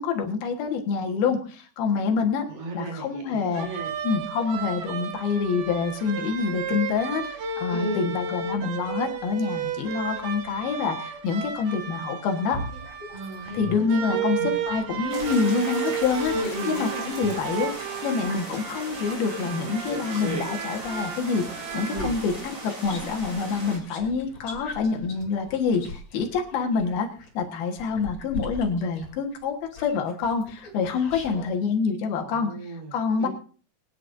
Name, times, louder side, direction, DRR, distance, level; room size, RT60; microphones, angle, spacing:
voice 1, 0.0-2.5 2.7-3.7 4.0-12.6 13.5-16.3 16.7-17.7 18.0-22.3 22.6-27.1 27.3-32.5 32.9-33.3, left 5 dB, 85° left, 3 dB, 3.4 m, -26 dB
voice 2, 2.5-3.9 7.7-8.1 13.1-14.2 16.3-17.1 21.9-22.2 32.1-33.3, right 2 dB, 70° right, 0 dB, 5.1 m, -35 dB
sound 1, 3.5-22.1, right 6 dB, 85° right, 3.2 m, -33 dB
sound 2, 12.5-15.4 16.0-20.3 20.8-31.5, left 3 dB, 50° left, 4.7 m, -41 dB
sound 3, 15.1-23.8, right 1 dB, 30° right, 3.9 m, -37 dB
23.5 x 9.7 x 2.6 m, 0.40 s
omnidirectional pair, 4.2 m